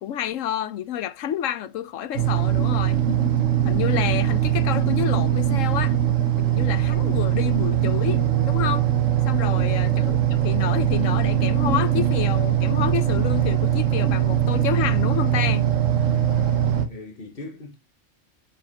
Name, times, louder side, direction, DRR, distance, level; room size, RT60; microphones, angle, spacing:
voice 1, 0.0-3.0 3.6-6.0 6.5-8.9 9.3-15.7, left 10 dB, 90° left, 1.1 m, -29 dB
sound 1, 2.1-16.9, right 11 dB, 80° right, 1.5 m, -21 dB
voice 2, 9.3-9.6 16.2-17.8, left 3 dB, 45° left, 1.9 m, -41 dB
8.6 x 4.8 x 2.8 m
omnidirectional pair, 1.3 m